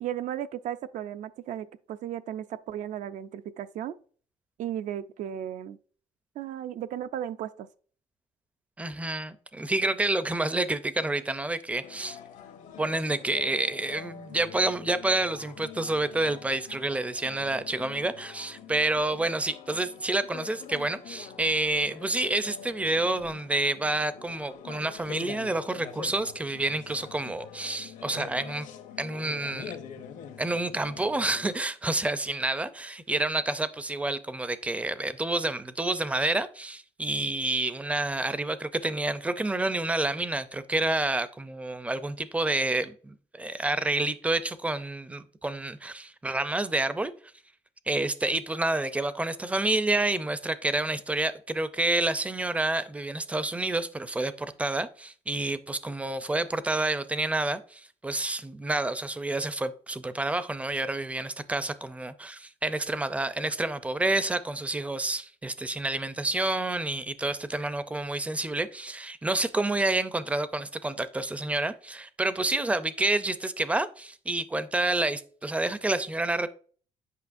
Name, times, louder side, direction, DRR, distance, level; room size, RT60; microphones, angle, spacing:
voice 1, 0.0-3.9 4.6-5.8 6.4-7.7, right 10 dB, 65° right, 0.4 m, -35 dB
voice 2, 8.8-12.2 12.8-28.7 29.0-29.8 30.4-47.1 47.9-76.5, right 2 dB, 10° right, 0.4 m, -29 dB
sound 1, 11.8-31.6, left 8 dB, 75° left, 0.9 m, -45 dB
8.3 x 5.5 x 2.5 m
cardioid pair, 130°, 13 cm